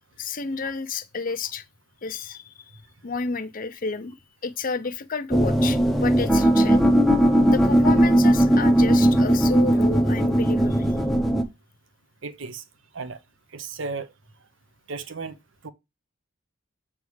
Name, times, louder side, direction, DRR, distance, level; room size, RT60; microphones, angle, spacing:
voice 1, 0.2-1.6 2.0-2.5 3.0-4.2 4.4-6.8 7.5-10.9, left 4 dB, 45° left, 0.6 m, -31 dB
sound 1, 5.3-11.4, right 1 dB, ahead, 0.7 m, -18 dB
voice 2, 12.2-12.6 12.9-13.2 13.5-14.1 14.9-15.3 15.6-15.7, right 4 dB, 65° right, 0.8 m, -34 dB
8.2 x 3.6 x 4.7 m
head